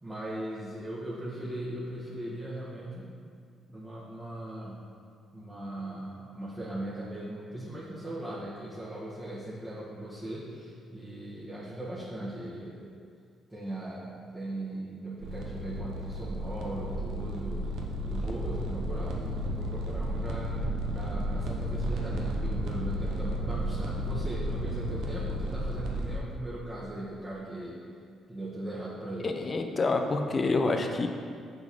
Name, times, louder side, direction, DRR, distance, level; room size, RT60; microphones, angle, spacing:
voice 1, 0.0-3.1 3.7-4.8 5.3-12.9 13.5-17.7 18.1-20.6 20.9-27.8 28.3-29.3, right 1 dB, 25° right, -7 dB, 1.4 m, -39 dB
sound 1, 15.2-26.2, equal, 70° right, 0.7 m, -33 dB
voice 2, 29.2-31.1, left 3 dB, 40° left, 5 dB, 0.7 m, -27 dB
6.0 x 3.9 x 5.3 m, 2.3 s
hypercardioid pair, 50°, 0 cm